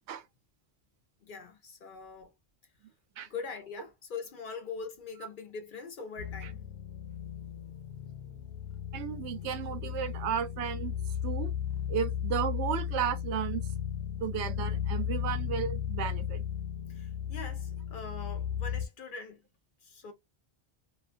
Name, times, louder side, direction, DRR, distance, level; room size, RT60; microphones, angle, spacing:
voice 1, 1.2-2.3 3.3-6.6 16.9-19.4 19.8-20.1, left 5 dB, 60° left, 0.6 m, -42 dB
sound 1, 6.2-18.9, left 9 dB, 85° left, 0.9 m, -35 dB
voice 2, 8.9-10.9 11.2-11.5 11.9-13.6 14.2-16.4, right 9 dB, 85° right, 0.9 m, -33 dB
2.4 x 2.3 x 2.4 m
omnidirectional pair, 1.1 m